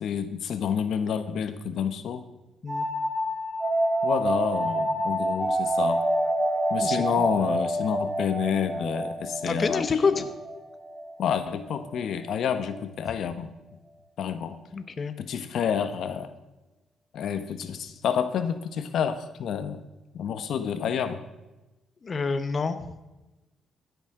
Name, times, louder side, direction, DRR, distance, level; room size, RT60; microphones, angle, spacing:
voice 1, 0.0-2.2 4.0-6.0 6.7-9.8 11.2-13.5 14.2-14.6 15.2-16.3 17.1-19.8 20.1-21.2, left 8 dB, 70° left, 11 dB, 1.0 m, -29 dB
sound 1, 2.7-12.1, right 1 dB, 20° right, 2.7 m, -28 dB
voice 2, 6.8-7.3 9.5-10.2 14.7-15.1 22.0-22.9, left 5 dB, 40° left, 10 dB, 0.9 m, -27 dB
15.5 x 10.5 x 3.8 m, 1.0 s
cardioid pair, 90°, 0 cm